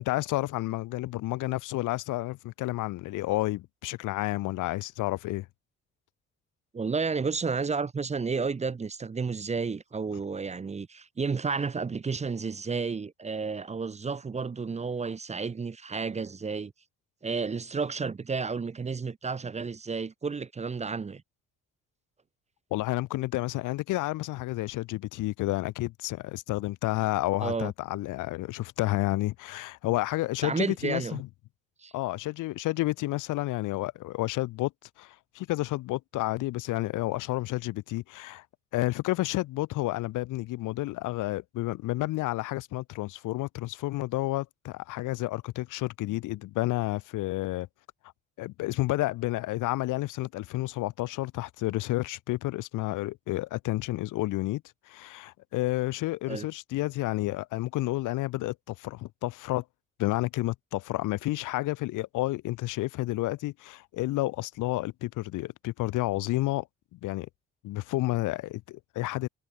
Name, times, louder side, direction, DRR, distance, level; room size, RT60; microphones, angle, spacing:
voice 1, 0.0-5.5 22.7-31.3 31.9-34.7 35.0-38.4 38.7-47.7 48.4-54.6 54.9-59.6 60.0-66.7 66.9-67.3 67.6-69.3, left 18 dB, 90° left, 1.0 m, -30 dB
voice 2, 6.7-16.7 17.2-21.2 27.4-27.7 30.4-31.2 31.8-31.9 56.3-56.5, right 5 dB, 20° right, 0.6 m, -31 dB
cardioid pair, 90°, 30 cm